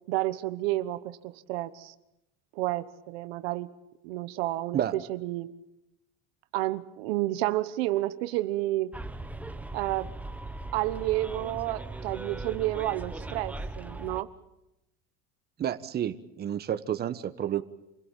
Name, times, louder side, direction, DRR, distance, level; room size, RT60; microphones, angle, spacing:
voice 1, 0.1-1.9 2.5-3.7 4.0-4.8 5.1-5.5 6.5-8.9 9.7-10.1 10.7-14.3, right 16 dB, 90° right, 12 dB, 1.2 m, -30 dB
Bus, 8.9-14.2, right 2 dB, 5° right, 1.2 m, -39 dB
voice 2, 15.6-17.6, right 10 dB, 35° right, 10 dB, 1.3 m, -30 dB
27.5 x 17.0 x 9.1 m, 0.91 s
cardioid pair, 130°, 29 cm